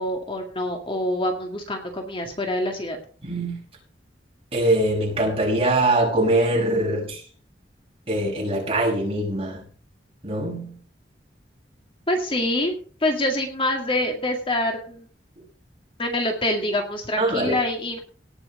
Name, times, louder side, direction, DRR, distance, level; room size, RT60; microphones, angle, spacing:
voice 1, 0.0-3.0 12.1-12.7 13.0-15.1 16.0-18.0, left 1 dB, 30° left, 3 dB, 2.1 m, -25 dB
voice 2, 3.2-3.6 4.5-7.2 8.1-9.6 10.2-10.7 17.2-17.6, right 1 dB, 35° right, -1 dB, 5.9 m, -22 dB
18.5 x 6.2 x 5.4 m, 0.42 s
head